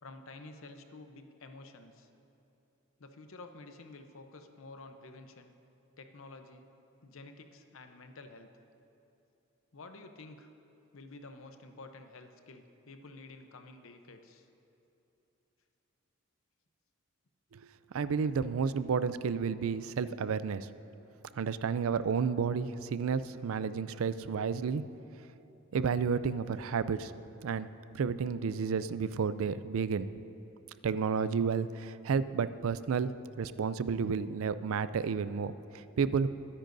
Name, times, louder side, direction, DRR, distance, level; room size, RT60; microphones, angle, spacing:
voice 1, 0.0-2.1 3.0-5.5 6.0-6.7 7.0-8.5 9.7-10.5 10.9-14.5, left 3 dB, 75° left, 7 dB, 0.7 m, -50 dB
voice 2, 17.9-20.7 21.4-24.8 25.7-27.1 27.4-27.7 27.9-30.1 30.8-33.1 33.4-36.3, right 6 dB, 80° right, 14 dB, 0.4 m, -31 dB
22.0 x 10.0 x 2.6 m, 2.9 s
head